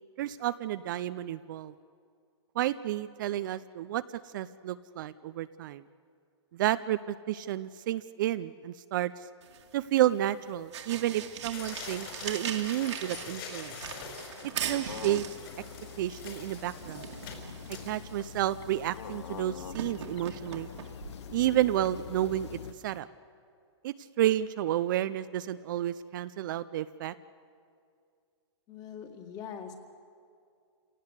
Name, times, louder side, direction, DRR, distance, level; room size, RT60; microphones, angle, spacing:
voice 1, 0.2-1.7 2.6-4.0 4.3-5.8 6.5-9.1 9.7-13.8 14.7-15.3 16.0-17.1 17.7-20.7 21.3-22.6 22.8-23.1 23.8-27.1, right 13 dB, 45° right, 13 dB, 0.5 m, -31 dB
sound 1, 9.4-23.0, right 8 dB, 70° right, 2.2 m, -42 dB
sound 2, 11.5-18.3 18.8-18.9 19.1-19.2 19.7-20.0 20.4-20.5 20.8-20.9, left 6 dB, 50° left, 4.7 m, -45 dB
sound 3, 14.9-22.7, left 8 dB, 70° left, 0.8 m, -44 dB
voice 2, 28.7-29.7, left 7 dB, 25° left, 5 dB, 2.0 m, -42 dB
27.5 x 17.5 x 8.2 m, 2.3 s
hypercardioid pair, 155°, 15 cm